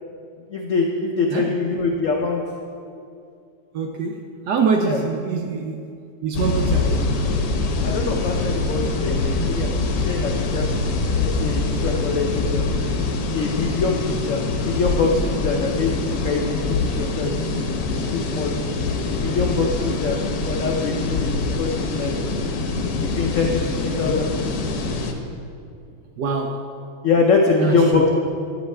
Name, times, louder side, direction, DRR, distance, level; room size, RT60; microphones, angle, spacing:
voice 1, 0.5-2.4 4.8-5.0 7.8-9.7 10.0-10.7 11.1-12.6 13.3-17.3 17.9-18.5 19.1-20.2 20.4-22.2 23.0-24.3 27.0-28.1, left 4 dB, 85° left, 0 dB, 0.6 m, -23 dB
voice 2, 3.7-6.0 6.2-7.2 12.0-12.1 19.9-20.0 26.2-26.7 27.6-28.1, right 5 dB, 70° right, 4 dB, 1.0 m, -25 dB
sound 1, 6.3-25.1, left 3 dB, 65° left, 1.2 m, -24 dB
10.5 x 8.0 x 3.3 m, 2.4 s
omnidirectional pair, 2.2 m